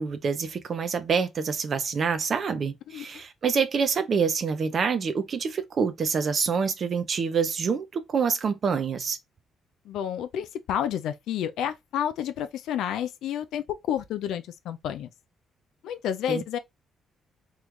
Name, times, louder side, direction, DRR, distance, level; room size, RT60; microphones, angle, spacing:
voice 1, 0.0-9.2 16.3-16.4, right 5 dB, 50° right, 0.5 m, -26 dB
voice 2, 9.9-15.1 15.8-16.6, left 10 dB, 85° left, 0.3 m, -30 dB
3.1 x 2.3 x 3.4 m
cardioid pair, 90°, 0 cm